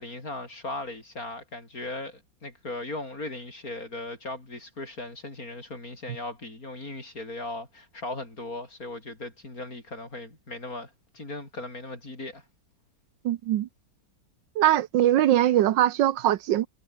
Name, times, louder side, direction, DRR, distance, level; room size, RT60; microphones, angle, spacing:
voice 1, 0.0-12.4, left 2 dB, 50° left, 6.4 m, -38 dB
voice 2, 13.2-13.7 14.6-16.7, right 12 dB, 80° right, 1.5 m, -22 dB
omnidirectional pair, 2.0 m